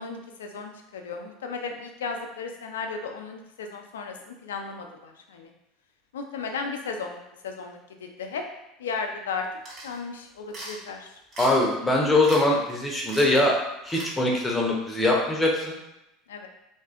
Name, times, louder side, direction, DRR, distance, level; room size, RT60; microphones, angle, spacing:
voice 1, 0.0-5.5 6.1-8.4 8.8-9.4 9.8-11.1 16.3-16.5, left 5 dB, 85° left, 4 dB, 0.3 m, -35 dB
sound 1, 9.7-10.0 10.5-10.8 11.3-11.7 12.2-12.4 12.7-12.8 13.1-13.4 13.9-14.1, right 1 dB, 45° right, 1.3 m, -38 dB
voice 2, 11.4-13.5 13.9-15.8, left 2 dB, 10° left, -2 dB, 0.7 m, -22 dB
2.6 x 2.4 x 2.4 m, 0.89 s
hypercardioid pair, 90°, 0 cm